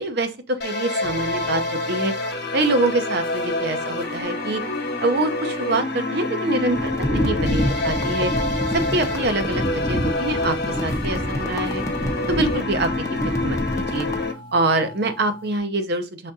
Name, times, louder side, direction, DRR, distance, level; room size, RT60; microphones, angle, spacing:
voice 1, 0.0-2.1 2.5-4.6 5.0-8.3 8.7-11.8 12.3-12.9 13.4-14.1 14.5-16.3, right 2 dB, 55° right, 0.7 m, -25 dB
sound 1, 0.6-14.3, left 2 dB, 50° left, 1.2 m, -27 dB
sound 2, 1.0-15.6, equal, 70° right, 1.5 m, -41 dB
sound 3, 6.7-14.2, left 1 dB, 15° left, 0.6 m, -27 dB
5.1 x 3.5 x 2.6 m
head